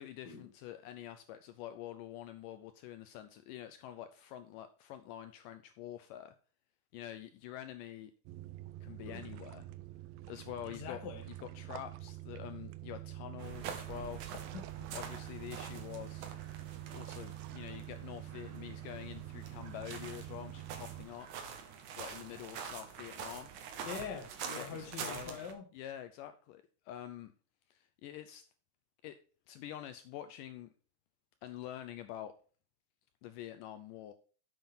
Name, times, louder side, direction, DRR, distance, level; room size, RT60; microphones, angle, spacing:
voice 1, 0.0-6.3 6.9-8.1 8.8-9.7 10.3-11.0 11.3-14.2 14.9-16.3 16.9-21.3 22.0-23.5 24.4-25.4 25.7-27.3 27.7-28.4 29.0-29.2 29.5-30.7 31.4-32.3 33.2-34.1, left 11 dB, 80° left, 2.0 m, -46 dB
sound 1, 8.3-21.1, right 14 dB, 85° right, 2.4 m, -46 dB
voice 2, 10.6-11.2 14.5-14.9 23.7-25.6, left 6 dB, 45° left, 1.5 m, -44 dB
sound 2, 13.4-25.5, right 7 dB, 65° right, 2.5 m, -46 dB
7.8 x 7.0 x 5.5 m
omnidirectional pair, 4.1 m